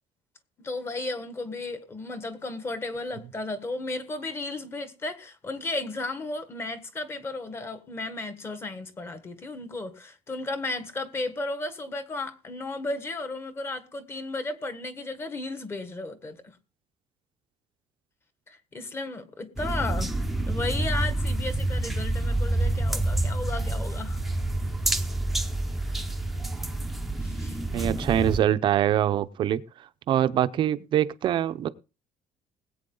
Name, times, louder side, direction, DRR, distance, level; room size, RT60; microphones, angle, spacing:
voice 1, 0.6-16.6 18.5-20.1 20.4-24.2 27.2-27.6, left 2 dB, 20° left, 1.5 m, -34 dB
sound 1, 19.6-28.4, right 2 dB, ahead, 0.8 m, -28 dB
voice 2, 27.7-29.6 30.1-31.7, right 11 dB, 40° right, 0.7 m, -24 dB
20.0 x 8.5 x 3.9 m
cardioid pair, 175°, 13 cm